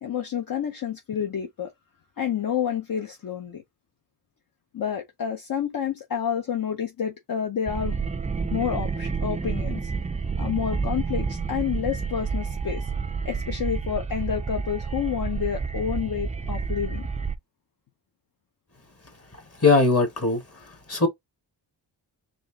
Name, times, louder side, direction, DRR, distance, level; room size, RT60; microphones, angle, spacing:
voice 1, 0.0-1.7 2.2-3.6 4.7-8.0 8.5-9.9 10.4-12.9 13.2-17.1, left 8 dB, 50° left, 0.7 m, -29 dB
sound 1, 7.7-17.3, right 5 dB, 20° right, 0.3 m, -29 dB
voice 2, 19.6-20.4 20.9-21.1, left 3 dB, 30° left, 1.6 m, -19 dB
4.3 x 3.5 x 2.8 m
wide cardioid pair, 120°, 44 cm